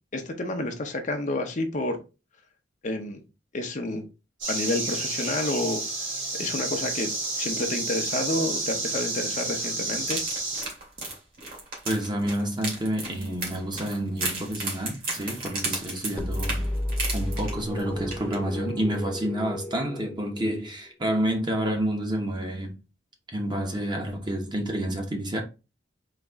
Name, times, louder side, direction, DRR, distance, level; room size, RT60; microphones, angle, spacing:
voice 1, 0.1-2.0 2.8-3.2 3.5-4.0 4.5-10.2, left 2 dB, 45° left, 0.7 m, -30 dB
sound 1, 4.4-10.6, right 2 dB, 70° right, 2.4 m, -30 dB
sound 2, 10.1-17.8 18.1-18.4 18.7-18.8, right 2 dB, 50° right, 1.9 m, -34 dB
voice 2, 11.8-16.7 17.1-22.8 23.3-25.4, right 1 dB, 25° right, 0.9 m, -29 dB
sound 3, 16.2-20.9, left 1 dB, 10° left, 0.4 m, -32 dB
4.1 x 2.9 x 3.5 m
head